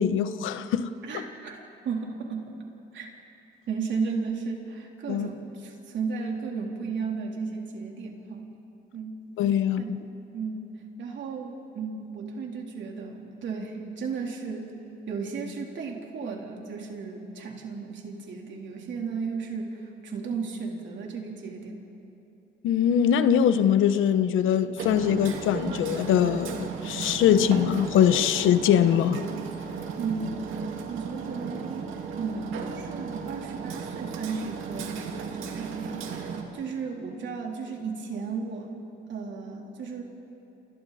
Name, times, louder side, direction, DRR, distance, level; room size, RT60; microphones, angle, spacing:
voice 1, 0.0-0.9 5.1-5.3 9.4-10.0 22.6-29.2, left 9 dB, 85° left, 0.9 m, -22 dB
voice 2, 1.1-2.5 2.9-3.1 3.7-8.5 8.9-9.2 9.8-9.9 10.3-10.7 11.0-14.7 15.1-21.8 30.0-30.2 30.9-38.8 39.1-40.0, right 5 dB, 65° right, 3.6 m, -34 dB
Hammer, 24.8-36.4, right 6 dB, 85° right, 2.3 m, -35 dB
30.0 x 28.0 x 4.2 m
cardioid pair, 90°, 20 cm